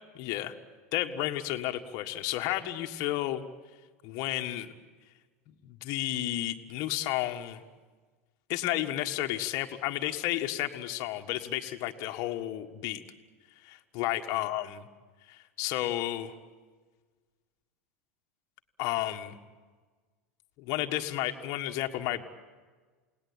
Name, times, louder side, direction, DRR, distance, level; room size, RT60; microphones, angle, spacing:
voice 1, 0.1-0.6 0.9-3.4 4.0-4.7 5.6-7.6 8.5-13.0 13.6-14.9 15.3-16.3 18.8-19.4 20.6-22.2, left 14 dB, 50° left, 5 dB, 1.7 m, -32 dB
29.0 x 19.0 x 8.9 m, 1.4 s
hypercardioid pair, 90°, 7 cm